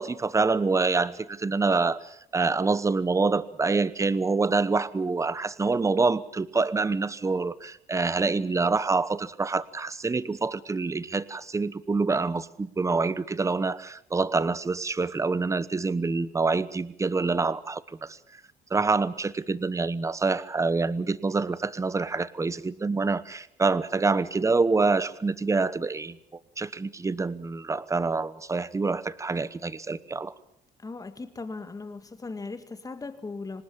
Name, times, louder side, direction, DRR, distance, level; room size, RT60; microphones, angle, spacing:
voice 1, 0.0-18.2 18.7-26.2 26.6-30.3, right 4 dB, 20° right, 17 dB, 1.0 m, -26 dB
voice 2, 30.8-33.6, left 3 dB, 20° left, 10 dB, 2.1 m, -38 dB
25.5 x 19.5 x 7.2 m, 0.72 s
cardioid pair, 110°, 17 cm